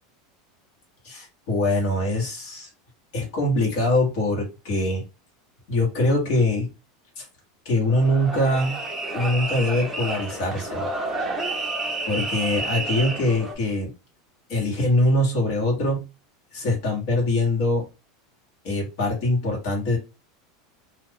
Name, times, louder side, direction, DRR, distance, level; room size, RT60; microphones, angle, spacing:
voice 1, 1.0-2.7 3.1-5.0 5.7-6.7 7.2-7.3 7.6-8.8 9.1-10.9 12.1-13.9 14.5-16.0 16.5-17.8 18.6-20.0, left 1 dB, 55° left, -1 dB, 1.4 m, -23 dB
sound 1, 7.8-13.5, right 2 dB, 10° right, 0.6 m, -30 dB
2.4 x 2.4 x 3.6 m, 0.27 s
supercardioid pair, 165°, 2 cm